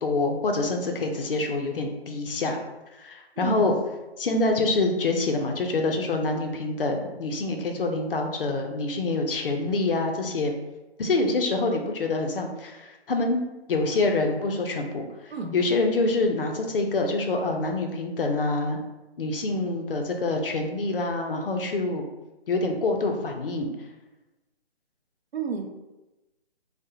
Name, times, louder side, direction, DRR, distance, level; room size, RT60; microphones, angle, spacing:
voice 1, 0.0-2.6 2.9-3.7 4.2-10.5 11.0-13.4 13.7-18.8 19.2-22.1 22.5-23.7, left 3 dB, 55° left, 3 dB, 0.4 m, -26 dB
voice 2, 3.4-3.7 15.3-15.6 25.3-25.7, right 5 dB, 65° right, 3 dB, 0.5 m, -31 dB
2.3 x 2.0 x 2.7 m, 1.0 s
figure-of-eight pair, 150°, 33 cm